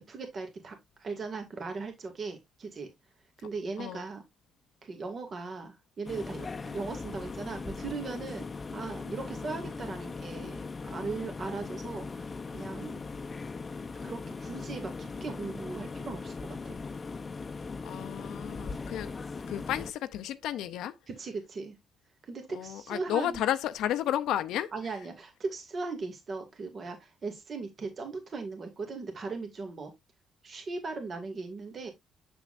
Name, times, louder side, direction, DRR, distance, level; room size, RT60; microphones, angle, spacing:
voice 1, 0.1-0.7 1.0-2.9 3.4-4.2 4.8-13.0 14.0-16.3 16.6-16.8 21.1-21.8 22.3-23.4 24.7-29.9 30.4-31.9, right 4 dB, 45° right, 2.1 m, -38 dB
sound 1, 6.0-19.9, left 4 dB, 30° left, 0.6 m, -39 dB
voice 2, 17.8-19.1 19.5-20.9 22.5-24.7, left 11 dB, 85° left, 0.5 m, -32 dB
7.2 x 6.7 x 2.5 m
cardioid pair, 90°, 0 cm